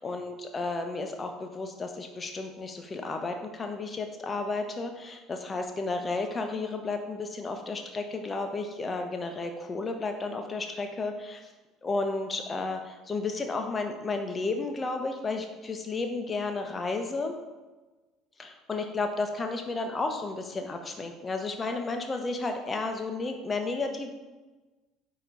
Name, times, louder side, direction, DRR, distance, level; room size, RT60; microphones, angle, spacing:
voice 1, 0.0-11.4 11.8-17.3 18.4-24.1, left 3 dB, 30° left, 4 dB, 1.0 m, -32 dB
9.1 x 3.1 x 4.0 m, 1.2 s
hypercardioid pair, 65°, 0 cm